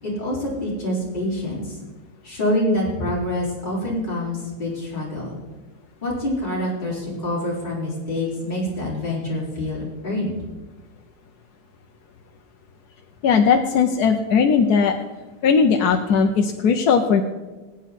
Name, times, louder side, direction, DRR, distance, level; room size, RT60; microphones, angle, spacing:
voice 1, 0.0-1.8 2.2-5.4 6.0-10.3, left 1 dB, 30° left, -6 dB, 4.2 m, -26 dB
voice 2, 13.2-15.0 15.4-17.2, left 6 dB, 70° left, 4 dB, 1.3 m, -18 dB
20.0 x 9.1 x 4.2 m, 1.2 s
omnidirectional pair, 1.7 m